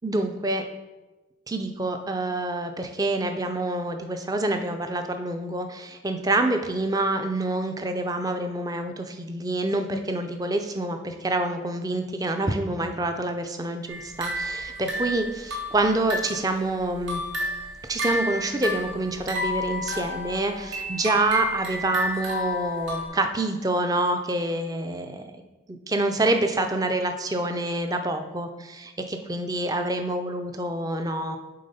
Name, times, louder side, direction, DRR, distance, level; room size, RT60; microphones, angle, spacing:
voice 1, 0.0-0.6 1.5-17.2 17.9-25.2 25.7-31.4, right 2 dB, 20° right, 6 dB, 0.5 m, -27 dB
sound 1, 13.9-16.5 16.9-23.1, left 1 dB, 80° right, 1.7 m, -31 dB
7.7 x 3.5 x 5.4 m, 1.1 s
head